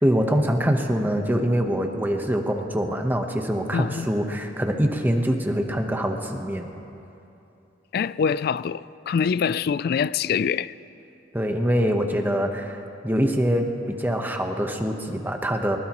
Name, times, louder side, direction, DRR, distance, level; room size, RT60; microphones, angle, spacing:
voice 1, 0.0-6.7 11.3-15.8, equal, 10° right, 1.0 m, -24 dB
voice 2, 3.7-4.1 7.9-10.7, left 6 dB, 55° left, 0.3 m, -24 dB
23.0 x 20.0 x 3.0 m
head